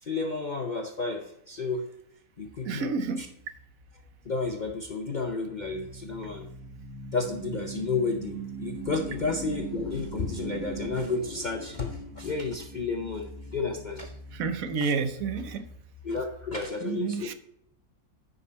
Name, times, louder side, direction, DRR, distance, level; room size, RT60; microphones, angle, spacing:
voice 1, 0.0-1.9 2.4-2.9 3.2-3.3 4.2-6.5 7.1-14.1 14.8-14.9 16.0-17.3, left 4 dB, 50° left, 4 dB, 0.6 m, -32 dB
sound 1, 2.5-16.6, right 2 dB, 15° right, 3.2 m, -42 dB
voice 2, 2.6-3.2 14.3-15.7 16.8-17.3, right 5 dB, 70° right, 10 dB, 1.1 m, -30 dB
9.9 x 5.3 x 4.1 m, 0.78 s
omnidirectional pair, 1.6 m